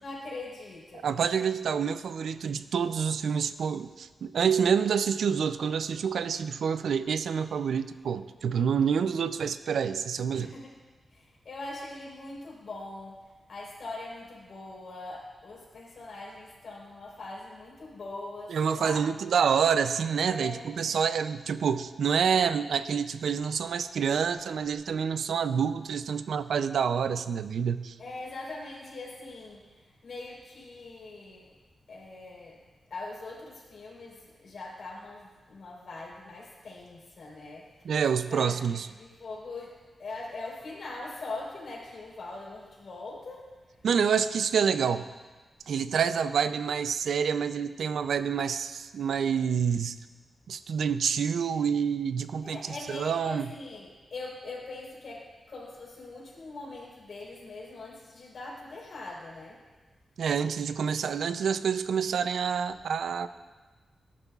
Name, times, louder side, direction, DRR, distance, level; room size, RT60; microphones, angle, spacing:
voice 1, 0.0-1.1 10.4-10.7 11.1-19.0 20.3-20.7 28.0-31.5 31.9-32.6 32.9-37.9 38.3-43.8 52.4-59.6, left 2 dB, 55° left, -4 dB, 3.9 m, -42 dB
voice 2, 1.0-10.5 18.5-28.0 37.8-38.9 43.8-45.1 45.7-49.9 50.5-53.5 60.2-63.3, right 7 dB, 90° right, 12 dB, 0.4 m, -27 dB
18.0 x 11.0 x 2.4 m, 1.3 s
wide cardioid pair, 165°, 0 cm